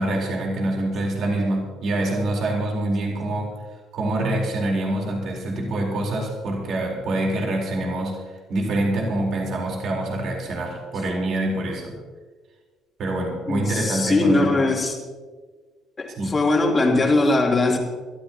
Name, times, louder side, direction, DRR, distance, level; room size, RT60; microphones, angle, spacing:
voice 1, 0.0-3.5 3.9-8.2 8.5-11.9 13.0-14.7 16.2-16.4, right 1 dB, 55° right, -1 dB, 4.1 m, -25 dB
voice 2, 13.5-15.0 16.0-17.8, left 2 dB, 30° left, 0 dB, 3.3 m, -20 dB
23.5 x 13.5 x 3.0 m, 1.5 s
hypercardioid pair, 55°, 0 cm